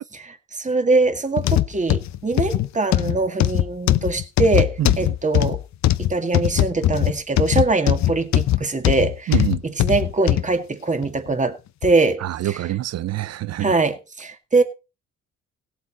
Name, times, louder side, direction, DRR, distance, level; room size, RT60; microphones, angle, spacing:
voice 1, 0.1-5.6 6.0-9.4 9.6-12.6 13.6-14.6, right 3 dB, 25° right, 2.1 m, -22 dB
sound 1, 1.4-10.5 11.0-11.2 11.8-11.9, left 13 dB, 65° left, 0.7 m, -20 dB
voice 2, 4.8-5.1 9.3-9.6 12.2-13.8, right 13 dB, 60° right, 0.6 m, -26 dB
17.0 x 8.2 x 4.2 m
cardioid pair, 90°, 30 cm